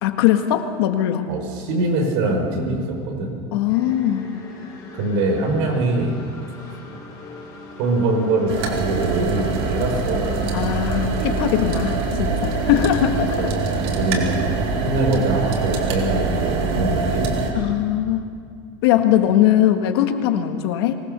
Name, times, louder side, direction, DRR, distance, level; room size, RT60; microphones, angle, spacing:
voice 1, 0.0-1.3 3.5-4.3 10.5-13.5 17.6-18.3 18.8-21.0, left 11 dB, 80° left, 6 dB, 1.8 m, -20 dB
voice 2, 1.3-3.3 4.9-6.1 7.8-10.4 12.6-12.9 13.2-13.5 14.0-14.5 14.8-17.3, right 2 dB, 60° right, 2 dB, 5.1 m, -23 dB
sound 1, 3.7-12.0, left 2 dB, 30° left, 5.7 m, -40 dB
sound 2, 8.5-17.5, right 3 dB, 90° right, 3.8 m, -24 dB
24.0 x 19.0 x 6.9 m, 2.2 s
cardioid pair, 170°, 13 cm